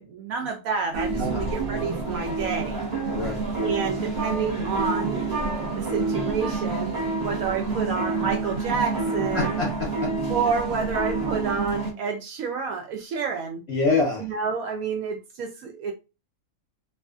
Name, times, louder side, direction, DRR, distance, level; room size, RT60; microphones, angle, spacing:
voice 1, 0.0-2.8 3.6-5.3 5.6-7.0 7.2-9.6 10.3-13.6 14.2-15.9, right 5 dB, 70° right, 0.9 m, -29 dB
sound 1, 0.9-11.9, right 3 dB, 35° right, 1.0 m, -28 dB
voice 2, 3.1-3.4 9.3-10.1 13.7-14.3, left 3 dB, 55° left, 0.7 m, -26 dB
2.6 x 2.5 x 2.3 m
omnidirectional pair, 1.7 m